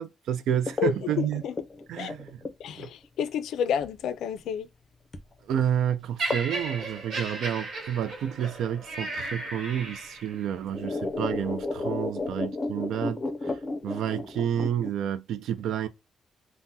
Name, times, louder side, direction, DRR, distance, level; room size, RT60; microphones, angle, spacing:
voice 1, 0.0-1.4 1.9-2.4 2.8-2.9 5.5-13.6 13.8-15.9, right 9 dB, 90° right, 0.3 m, -30 dB
sound 1, 0.7-3.0 3.8-3.9 5.1-5.3 5.6-5.7 6.3-6.5 6.8-7.6 8.8-8.9 9.8-9.9 10.3-14.9, left 3 dB, 25° left, 0.5 m, -33 dB
voice 2, 0.8-1.5 2.0-2.1 2.6-4.7, left 8 dB, 85° left, 0.3 m, -30 dB
Laughter, 6.2-10.4 11.2-11.4, right 2 dB, 60° right, 1.2 m, -35 dB
3.4 x 2.0 x 2.7 m
cardioid pair, 130°, 0 cm